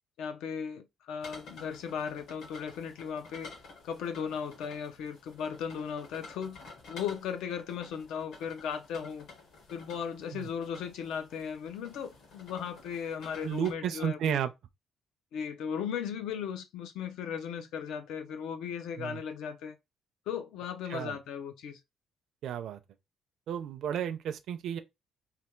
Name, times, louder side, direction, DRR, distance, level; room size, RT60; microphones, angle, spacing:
voice 1, 0.2-3.5 3.8-6.6 6.9-9.3 9.7-14.4 15.3-19.8 20.3-21.8, left 7 dB, 80° left, 0.6 m, -37 dB
sound 1, 1.2-13.7, left 3 dB, 65° left, 1.4 m, -52 dB
voice 2, 13.4-14.5 19.0-19.2 20.9-21.2 22.4-22.8 23.5-24.8, right 9 dB, 60° right, 0.4 m, -33 dB
3.3 x 2.3 x 4.4 m
cardioid pair, 180°, 0 cm